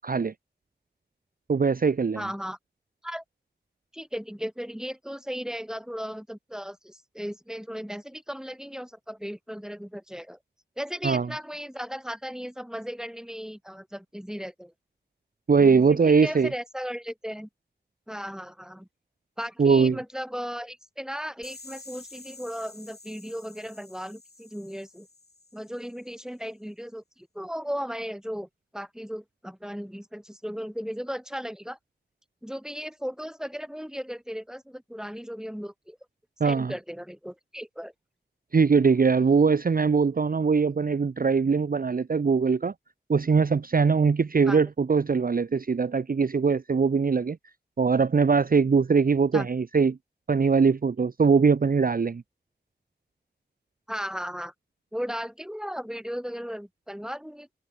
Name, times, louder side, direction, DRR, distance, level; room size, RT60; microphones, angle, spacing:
voice 1, 1.5-2.2 11.0-11.3 15.5-16.5 19.6-20.0 36.4-36.7 38.5-42.7 43.1-47.4 47.8-50.0 50.3-52.2, right 5 dB, 50° right, 0.5 m, -21 dB
voice 2, 2.2-2.6 3.0-3.2 3.9-10.4 10.8-14.7 15.6-17.5 18.1-18.9 19.4-25.1 25.5-28.5 28.7-31.8 32.4-36.0 36.4-37.9 44.5-44.6 49.3-49.5 53.9-54.5 54.9-57.5, equal, 5° right, 3.7 m, -36 dB
sound 1, 21.4-26.2, left 2 dB, 60° left, 5.4 m, -49 dB
open air
wide cardioid pair, 55°, 18 cm